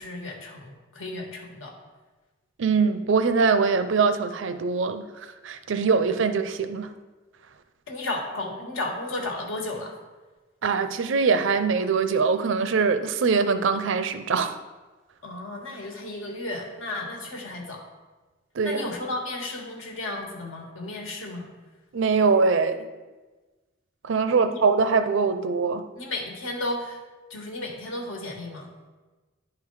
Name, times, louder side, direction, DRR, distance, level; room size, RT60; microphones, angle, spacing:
voice 1, 0.0-1.7 6.0-6.1 7.9-10.0 15.2-17.9 18.6-21.5 24.3-24.6 26.0-27.0 27.3-28.7, left 2 dB, 80° left, 1 dB, 1.5 m, -34 dB
voice 2, 2.6-6.9 10.6-14.6 18.6-18.9 21.9-22.9 24.0-25.9, right 5 dB, 70° right, 10 dB, 0.5 m, -23 dB
10.0 x 3.9 x 4.6 m, 1.3 s
head